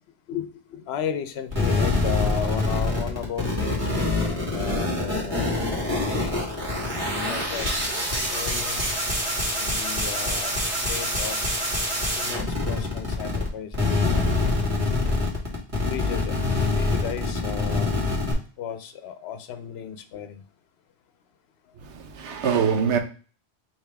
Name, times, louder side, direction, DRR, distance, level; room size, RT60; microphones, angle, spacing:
voice 1, 0.3-6.6 7.3-7.7 8.3-8.8 9.5-10.6 10.9-11.4 12.1-14.4 15.9-16.3 16.7-18.0 18.6-20.4, left 8 dB, 70° left, 0.9 m, -34 dB
sound 1, 1.5-13.5 13.7-18.3, left 2 dB, 30° right, 1.6 m, -25 dB
voice 2, 21.8-23.0, right 7 dB, 90° right, 1.1 m, -24 dB
5.0 x 3.0 x 3.4 m
omnidirectional pair, 1.1 m